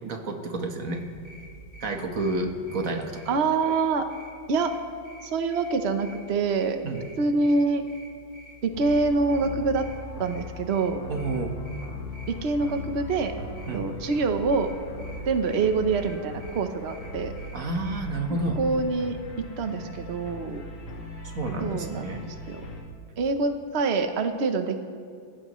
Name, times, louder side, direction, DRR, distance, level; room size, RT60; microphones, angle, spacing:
voice 1, 0.0-1.0 1.8-3.4 3.6-3.7 6.8-7.1 11.1-11.5 13.7-13.9 17.5-18.6 21.2-22.2, right 2 dB, 40° right, 4 dB, 1.6 m, -30 dB
sound 1, 0.9-18.0, left 1 dB, 50° left, 3.5 m, -50 dB
voice 2, 3.3-4.1 4.5-4.7 5.2-6.8 7.2-7.8 8.6-9.9 10.2-11.0 12.3-13.3 13.7-14.7 15.3-17.3 18.3-20.6 21.6-22.6 23.2-24.8, right 4 dB, 75° right, 7 dB, 0.6 m, -26 dB
sound 2, 8.7-22.8, left 1 dB, 75° left, 2.9 m, -39 dB
28.5 x 16.0 x 3.1 m, 2.3 s
omnidirectional pair, 2.4 m